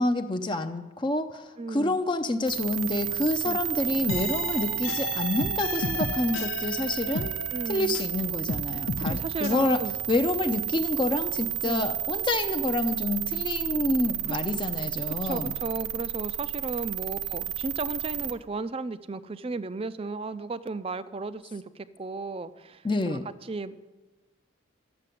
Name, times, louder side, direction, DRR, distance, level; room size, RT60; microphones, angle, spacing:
voice 1, 0.0-7.3 7.7-9.8 10.1-15.6 22.8-23.3, left 2 dB, 25° left, 8 dB, 0.5 m, -28 dB
voice 2, 1.6-2.0 3.4-3.6 7.5-8.0 9.0-10.0 11.6-11.9 14.3-14.4 14.7-23.9, right 3 dB, 25° right, 14 dB, 0.4 m, -35 dB
sound 1, 2.5-18.3, right 12 dB, 70° right, 0.8 m, -32 dB
sound 2, 4.1-8.2 8.5-9.5, left 4 dB, 85° left, 0.7 m, -33 dB
12.0 x 6.7 x 9.2 m, 1.1 s
head